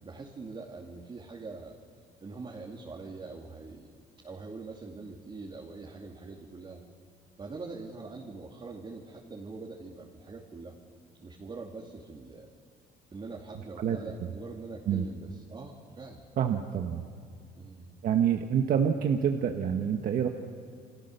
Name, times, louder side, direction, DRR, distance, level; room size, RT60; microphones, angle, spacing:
voice 1, 0.0-1.8 2.2-6.8 7.4-10.7 11.2-12.5 13.1-16.2 17.6-18.0, right 3 dB, 30° right, -1 dB, 2.8 m, -43 dB
voice 2, 16.4-17.0 18.0-20.3, right 8 dB, 60° right, 4 dB, 1.4 m, -27 dB
29.0 x 25.0 x 6.9 m, 2.2 s
cardioid pair, 110°, 17 cm